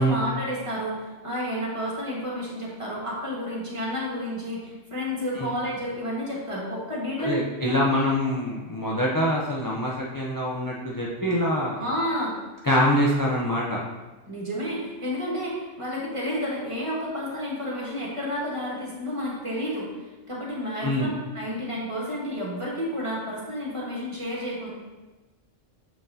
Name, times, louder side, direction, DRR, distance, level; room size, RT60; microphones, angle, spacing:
voice 1, 0.0-7.4 7.7-8.0 11.8-12.4 14.3-19.9 20.3-24.7, equal, 25° right, -5 dB, 1.5 m, -31 dB
voice 2, 7.2-11.8 12.6-13.8 20.8-21.1, equal, 25° left, -5 dB, 0.5 m, -24 dB
7.1 x 5.7 x 2.8 m, 1.2 s
omnidirectional pair, 1.3 m